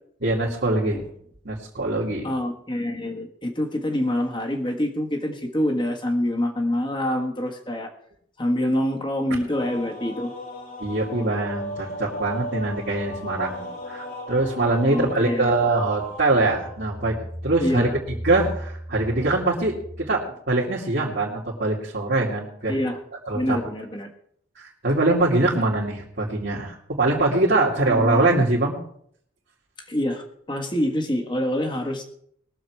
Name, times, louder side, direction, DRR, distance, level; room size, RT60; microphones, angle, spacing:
voice 1, 0.2-1.0 1.4-2.3 10.8-17.9 18.2-22.8 23.3-23.6 24.6-28.8, right 2 dB, 55° right, -7 dB, 2.3 m, -23 dB
voice 2, 2.2-7.9 8.4-10.3 14.9-15.6 17.6-18.0 22.7-23.0 23.3-24.1 27.9-28.5 29.9-32.0, left 1 dB, 25° left, 3 dB, 1.6 m, -26 dB
sound 1, 9.5-17.1, equal, 45° left, 2.5 m, -37 dB
21.0 x 7.2 x 4.8 m, 0.67 s
head